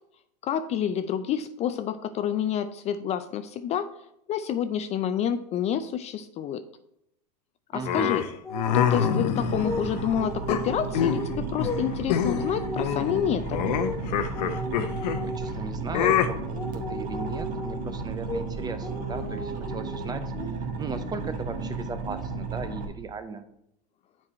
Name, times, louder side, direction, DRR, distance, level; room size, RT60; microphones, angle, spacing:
voice 1, 0.4-3.9 4.3-6.6 7.7-8.2 8.7-13.8, left 9 dB, 30° left, 10 dB, 0.4 m, -28 dB
voice 2, 7.7-8.2 15.2-20.2 20.5-23.4, right 4 dB, 20° right, 10 dB, 0.7 m, -37 dB
sound 1, 7.8-10.0 10.5-11.3 11.6-11.8 12.1-12.5 12.8-15.2 15.9-16.3, left 9 dB, 70° left, 0.7 m, -26 dB
sound 2, 8.4-9.2 9.6-9.9 10.2-11.9 12.2-13.3 13.8-14.0 14.3-15.6 16.0-16.2 16.6-17.9 18.3-18.5 18.8-20.1 20.3-20.6 20.9-21.4, left 1 dB, 15° left, 1.1 m, -35 dB
sound 3, 9.4-22.9, right 3 dB, 40° right, 1.4 m, -34 dB
7.4 x 4.7 x 4.2 m, 0.79 s
hypercardioid pair, 110°, 21 cm